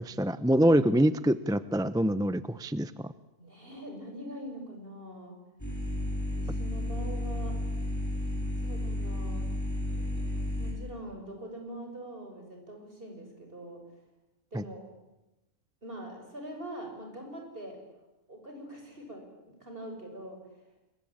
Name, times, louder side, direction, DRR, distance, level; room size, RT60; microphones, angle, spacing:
voice 1, 0.0-3.1 14.5-14.6, right 1 dB, 5° right, 14 dB, 0.5 m, -25 dB
voice 2, 3.4-5.4 6.3-7.6 8.6-9.5 10.6-13.8 14.5-14.9 15.8-17.8 18.3-20.4, right 1 dB, 40° right, 3 dB, 6.6 m, -43 dB
sound 1, 5.6-10.7, left 1 dB, 10° left, 7.5 m, -32 dB
26.5 x 23.0 x 8.8 m, 1.0 s
omnidirectional pair, 1.4 m